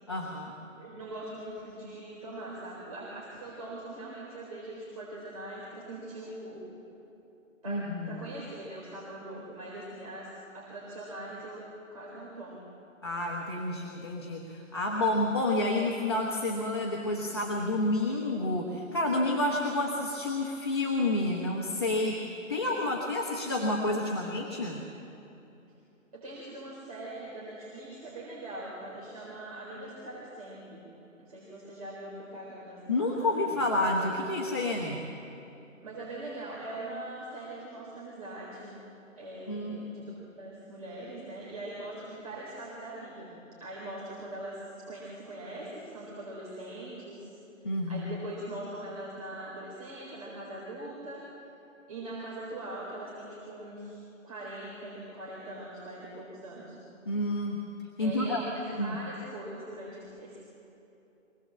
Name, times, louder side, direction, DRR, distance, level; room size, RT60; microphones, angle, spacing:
voice 1, 0.1-0.5 7.7-8.1 13.0-24.8 32.9-35.0 39.5-39.8 47.6-48.1 57.1-57.6 58.0-58.4 58.8-59.0, left 2 dB, 20° left, -3 dB, 1.2 m, -29 dB
voice 2, 0.8-6.7 7.6-12.7 26.1-30.9 31.2-33.6 35.8-38.8 39.2-40.0 40.4-47.3 47.6-51.3 51.9-56.8 58.0-60.4, right 1 dB, 30° right, -6 dB, 4.2 m, -42 dB
24.5 x 18.0 x 7.5 m, 3.0 s
hypercardioid pair, 175°, 40 cm